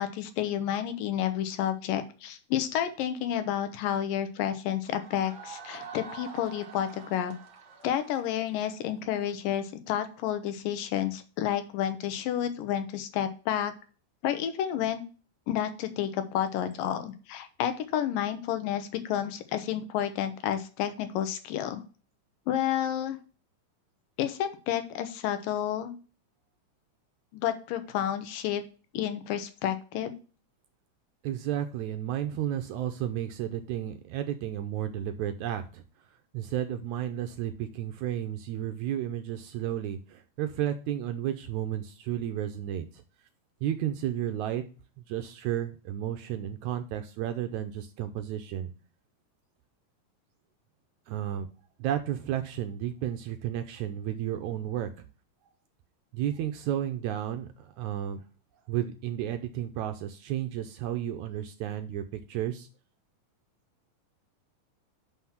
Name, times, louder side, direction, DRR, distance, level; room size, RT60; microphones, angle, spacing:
voice 1, 0.0-7.3 7.8-13.7 14.2-15.0 15.5-21.8 22.5-23.2 24.2-25.9 27.3-28.6 28.9-30.1, left 10 dB, 90° left, 9 dB, 2.6 m, -30 dB
sound 1, 4.8-9.6, right 5 dB, 50° right, 1.2 m, -46 dB
voice 2, 31.2-35.8 36.3-43.0 43.6-44.6 45.1-48.7 51.1-51.5 51.8-55.1 56.1-58.2 58.7-62.0 62.3-62.7, right 11 dB, 80° right, 7 dB, 1.8 m, -32 dB
6.0 x 5.7 x 5.9 m, 0.36 s
omnidirectional pair, 3.8 m